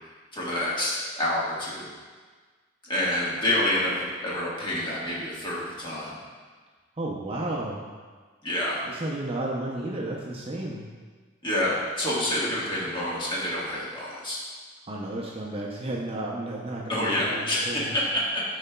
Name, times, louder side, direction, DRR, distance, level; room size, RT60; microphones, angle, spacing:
voice 1, 0.3-1.9 2.9-6.2 8.4-8.8 11.4-14.4 16.9-18.4, left 1 dB, 25° left, -7 dB, 1.4 m, -28 dB
voice 2, 7.0-7.8 8.8-10.9 14.9-17.9, right 1 dB, 30° right, -3 dB, 0.6 m, -32 dB
10.5 x 4.0 x 2.2 m, 1.5 s
head